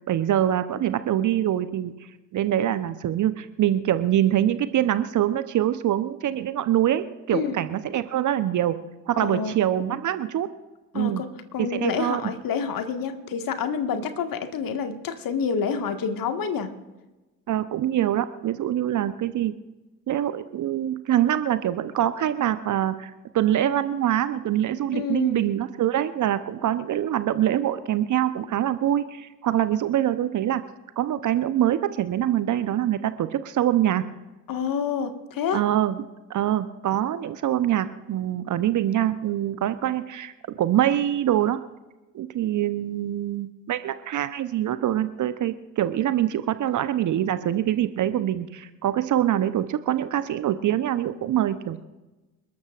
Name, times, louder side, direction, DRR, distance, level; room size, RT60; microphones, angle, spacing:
voice 1, 0.1-1.9 2.3-8.8 9.1-10.5 10.9-11.2 11.6-12.2 17.5-19.6 20.1-30.6 31.0-34.1 35.5-36.0 36.3-41.6 42.1-51.8, right 11 dB, 35° right, 12 dB, 0.9 m, -24 dB
voice 2, 9.2-9.6 10.9-11.3 11.5-16.7 24.9-25.5 34.5-35.6, left 6 dB, 40° left, 7 dB, 1.8 m, -28 dB
28.0 x 12.5 x 2.5 m, 1.1 s
figure-of-eight pair, 60°, 49 cm